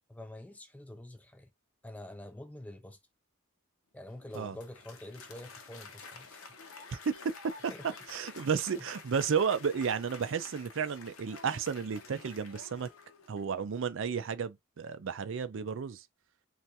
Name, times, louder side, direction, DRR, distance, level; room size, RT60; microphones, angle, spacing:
voice 1, 0.1-1.5 1.8-3.0 3.9-6.5 7.7-7.9 8.2-8.3 8.7-8.8, left 1 dB, 5° left, 0.3 m, -47 dB
Applause, 4.0-13.6, left 4 dB, 65° left, 0.7 m, -50 dB
voice 2, 8.1-12.9 13.3-16.0, right 6 dB, 60° right, 0.4 m, -32 dB
3.3 x 2.5 x 2.7 m
head